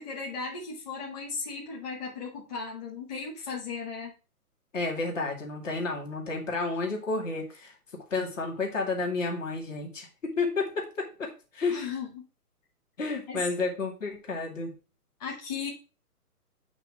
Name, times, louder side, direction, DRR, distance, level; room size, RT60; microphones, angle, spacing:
voice 1, 0.0-4.1 11.7-12.3 13.3-13.5 15.2-15.7, left 5 dB, 25° left, -4 dB, 1.9 m, -36 dB
voice 2, 4.7-7.7 8.1-11.8 13.0-14.7, left 3 dB, 55° left, 1 dB, 2.4 m, -31 dB
8.8 x 3.0 x 6.1 m, 0.34 s
hypercardioid pair, 175°, 46 cm